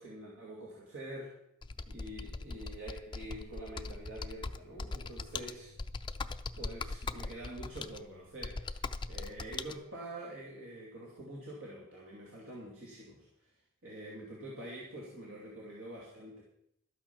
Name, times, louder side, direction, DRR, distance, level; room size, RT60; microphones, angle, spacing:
voice 1, 0.0-1.4 1.9-5.7 6.6-13.5 13.8-16.4, right 1 dB, 60° right, -4 dB, 2.5 m, -46 dB
Computer keyboard, 1.6-9.7, left 3 dB, 20° left, 0.4 m, -41 dB
12.5 x 8.8 x 5.9 m, 0.77 s
head